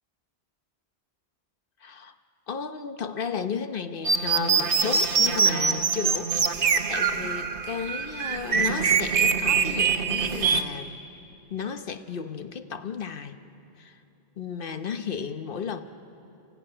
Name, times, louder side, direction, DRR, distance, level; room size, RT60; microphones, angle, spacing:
voice 1, 1.8-2.1 2.5-11.0 11.5-13.4 13.8-14.0 14.4-15.8, left 6 dB, 60° left, 9 dB, 1.1 m, -34 dB
sound 1, 4.0-10.6, right 6 dB, 60° right, 1.2 m, -24 dB
27.0 x 14.5 x 9.8 m, 2.8 s
omnidirectional pair, 1.1 m